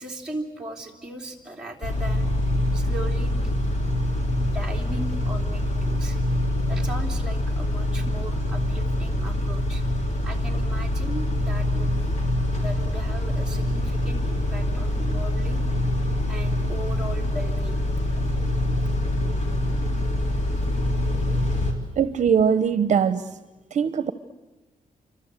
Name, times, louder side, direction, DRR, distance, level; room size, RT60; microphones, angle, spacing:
voice 1, 0.0-2.3 2.7-4.0 4.4-6.2 6.7-9.8 10.2-12.1 12.6-15.6 16.3-17.8, right 1 dB, 5° right, -1 dB, 3.0 m, -38 dB
Car / Idling / Accelerating revving vroom, 1.8-21.7, left 1 dB, 55° left, 3.7 m, -25 dB
voice 2, 22.0-23.3 23.7-24.1, right 7 dB, 60° right, 12 dB, 0.9 m, -21 dB
28.0 x 25.0 x 8.3 m, 1.2 s
wide cardioid pair, 165°, 14 cm